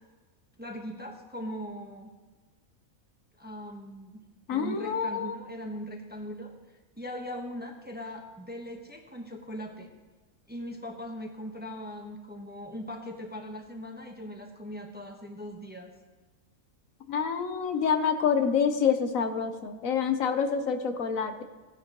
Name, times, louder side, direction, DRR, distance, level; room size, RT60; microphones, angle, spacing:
voice 1, 0.6-2.1 3.4-4.2 4.5-6.5 7.0-9.9 10.5-15.9, equal, 10° right, 2 dB, 1.0 m, -40 dB
voice 2, 4.5-5.4 17.1-21.4, left 6 dB, 70° left, 8 dB, 1.2 m, -27 dB
16.5 x 10.5 x 3.0 m, 1.3 s
omnidirectional pair, 1.5 m